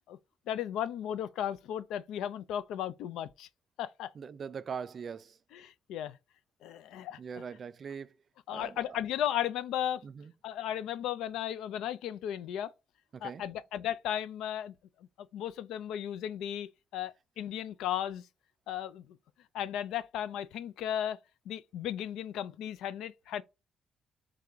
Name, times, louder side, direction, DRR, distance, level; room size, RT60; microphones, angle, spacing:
voice 1, 0.5-3.5 3.8-4.1 5.5-6.2 6.6-7.2 8.5-10.0 10.4-12.7 13.2-14.7 15.3-18.2 18.7-19.0 19.5-21.2 21.5-23.4, left 10 dB, 85° left, 0.3 m, -35 dB
voice 2, 4.1-5.4 7.2-8.1 8.5-9.0 10.0-10.3 13.1-13.4, right 6 dB, 50° right, 0.3 m, -41 dB
3.7 x 3.3 x 3.4 m
cardioid pair, 90°, 0 cm